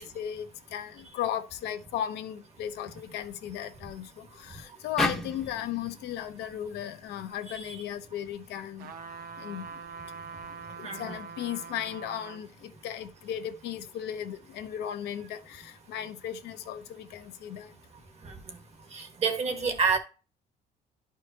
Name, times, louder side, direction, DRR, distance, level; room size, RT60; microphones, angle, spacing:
voice 1, 0.0-8.9 9.4-9.7 10.8-17.7 19.5-19.7, left 10 dB, 80° left, 0.9 m, -36 dB
sound 1, 5.0-8.2, equal, ahead, 0.9 m, -36 dB
sound 2, 8.8-12.4 13.0-13.1, right 6 dB, 60° right, 0.8 m, -43 dB
voice 2, 10.8-11.2 18.2-18.6 18.9-20.0, right 5 dB, 40° right, 1.5 m, -29 dB
11.0 x 4.9 x 2.8 m
cardioid pair, 110°, 17 cm